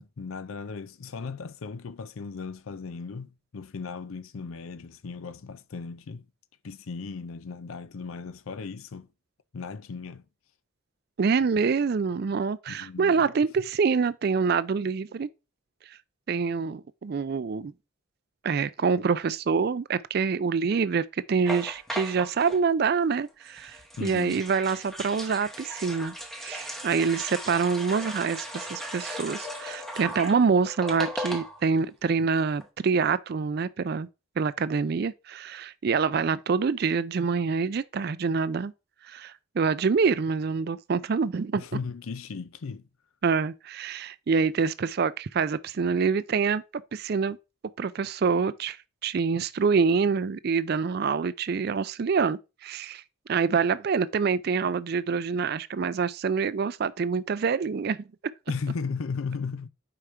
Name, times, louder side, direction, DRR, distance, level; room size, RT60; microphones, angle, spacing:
voice 1, 0.0-6.3 6.6-9.1 9.5-10.2 12.7-13.3 24.0-24.4 41.5-42.8 58.5-59.7, left 5 dB, 75° left, 0.5 m, -36 dB
voice 2, 11.2-15.3 16.3-17.7 18.4-26.1 26.4-34.1 34.4-38.7 39.1-41.6 43.2-46.6 46.9-47.4 47.8-48.8 49.0-53.0 53.3-58.0, right 5 dB, 45° right, 0.4 m, -26 dB
sound 1, 21.5-22.6 23.5-31.8 32.1-32.2 32.4-32.7, equal, ahead, 0.8 m, -37 dB
5.0 x 4.8 x 4.3 m
head